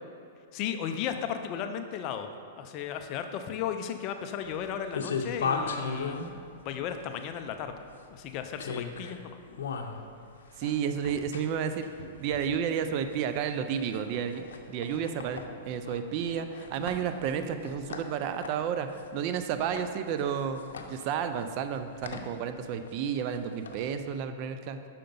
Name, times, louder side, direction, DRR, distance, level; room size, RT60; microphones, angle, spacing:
voice 1, 0.5-2.3 2.6-6.2 6.6-7.8 8.1-9.4, left 8 dB, 40° left, 7 dB, 0.4 m, -35 dB
sound 1, 4.4-24.2, left 5 dB, 85° left, 0.6 m, -39 dB
voice 2, 10.6-11.9 12.2-24.8, right 7 dB, 40° right, 9 dB, 0.4 m, -31 dB
5.7 x 5.1 x 5.3 m, 2.4 s
hypercardioid pair, 145°, 0 cm